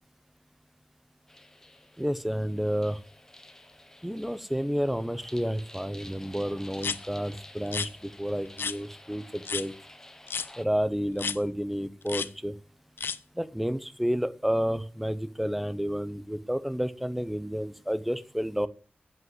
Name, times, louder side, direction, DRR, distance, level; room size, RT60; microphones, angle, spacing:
sound 1, 1.3-10.6, left 1 dB, 15° left, 1.0 m, -51 dB
voice 1, 2.0-3.0 4.0-9.7 10.6-12.5 13.4-18.7, equal, 5° right, 14 dB, 0.7 m, -30 dB
sound 2, 6.8-7.0 7.7-7.9 8.6-8.8 9.4-9.7 10.3-10.5 11.2-11.4 12.1-12.3 13.0-13.2, left 6 dB, 75° left, 0.5 m, -31 dB
8.2 x 8.0 x 7.9 m, 0.40 s
wide cardioid pair, 140°, 4 cm